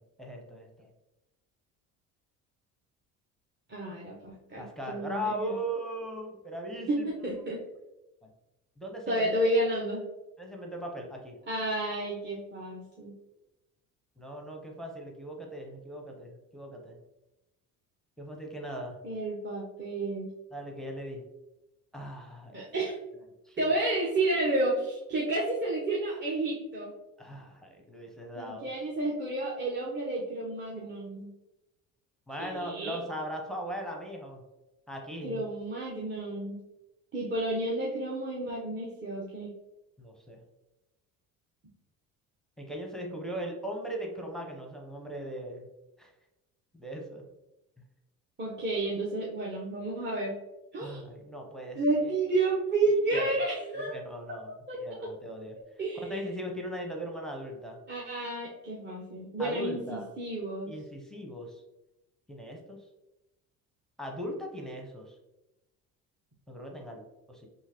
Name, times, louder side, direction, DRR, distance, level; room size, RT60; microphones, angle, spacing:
voice 1, 0.2-0.9 4.6-7.1 8.8-9.3 10.4-11.3 14.2-17.0 18.2-19.0 20.5-21.2 21.9-22.5 23.4-23.6 27.2-28.7 32.3-34.4 34.9-35.4 40.0-40.4 42.6-45.7 46.0-46.1 46.7-47.3 50.8-52.1 53.1-53.3 53.9-55.5 56.0-57.8 59.4-60.1 60.7-61.6 62.3-62.8 64.0-65.2 66.5-67.0 67.3-67.5, equal, ahead, 1 dB, 0.8 m, -39 dB
voice 2, 3.7-5.5 6.9-7.6 9.1-10.0 11.5-13.1 19.0-20.3 22.5-23.0 23.6-26.9 28.4-31.3 32.4-33.0 35.2-36.6 37.1-39.5 48.4-50.3 50.7-51.0 51.7-54.0 54.7-54.8 55.8-56.2 57.9-60.7, right 2 dB, 25° right, -5 dB, 0.9 m, -31 dB
3.7 x 2.7 x 2.9 m, 0.98 s
hypercardioid pair, 65°, 39 cm